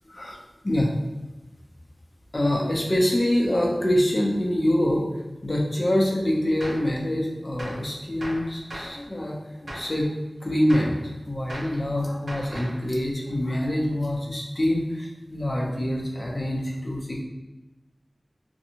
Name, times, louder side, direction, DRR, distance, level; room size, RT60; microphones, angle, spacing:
voice 1, 0.0-0.4 0.6-0.9 2.3-10.1 10.4-17.2, left 1 dB, 45° left, -2 dB, 0.6 m, -25 dB
Gunshot gunfire, 6.6-6.9 7.6-7.9 8.2-9.0 9.7-10.0 10.7-11.0 11.5-11.8 12.3-12.8, right 1 dB, 85° right, 0.7 m, -37 dB
2.6 x 2.3 x 2.8 m, 1.1 s
wide cardioid pair, 60°, 0 cm